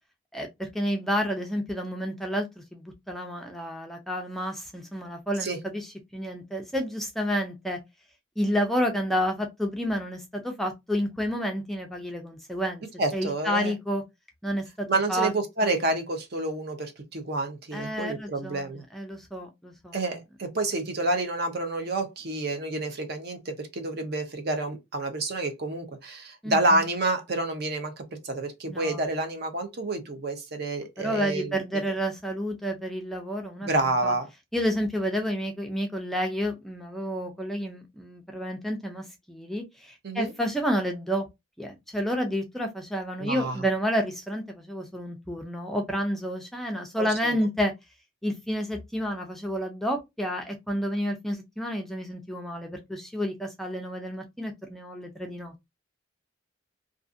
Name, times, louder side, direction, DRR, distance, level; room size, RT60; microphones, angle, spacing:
voice 1, 0.3-7.8 8.4-12.8 13.1-14.0 14.4-15.3 15.6-15.7 17.7-20.0 26.4-26.8 28.7-29.0 31.0-34.1 34.5-41.3 41.6-47.7 48.2-55.7, equal, ahead, 0.4 m, -30 dB
voice 2, 13.0-13.7 14.9-18.8 19.9-31.8 33.6-34.3 40.0-40.3 43.2-43.6 47.0-47.5, right 2 dB, 55° right, 0.7 m, -29 dB
2.5 x 2.4 x 2.5 m
head